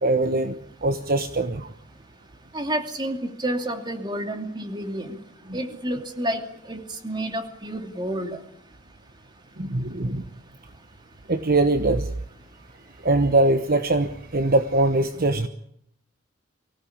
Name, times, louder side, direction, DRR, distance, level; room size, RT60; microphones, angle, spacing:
voice 1, 0.0-1.7 9.6-10.2 11.3-12.1 13.0-15.5, right 2 dB, 50° right, 9 dB, 1.1 m, -22 dB
voice 2, 2.5-5.2 5.5-8.4, right 1 dB, 25° right, 5 dB, 2.7 m, -30 dB
24.5 x 17.0 x 8.6 m, 0.71 s
head